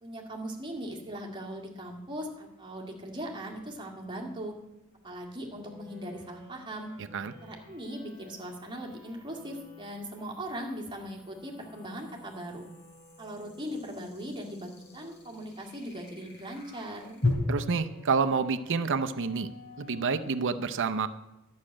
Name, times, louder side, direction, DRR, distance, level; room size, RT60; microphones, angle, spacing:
voice 1, 0.0-4.5 5.0-6.9 7.4-12.7 13.2-17.2, equal, 20° right, 0 dB, 1.9 m, -39 dB
sound 1, 0.6-20.4, left 2 dB, 10° left, 4.2 m, -56 dB
sound 2, 3.7-3.8 7.2-17.3, left 3 dB, 55° left, 2.8 m, -40 dB
voice 2, 17.5-19.5 19.8-21.1, right 5 dB, 60° right, 10 dB, 0.6 m, -28 dB
12.0 x 6.4 x 8.6 m, 0.95 s
head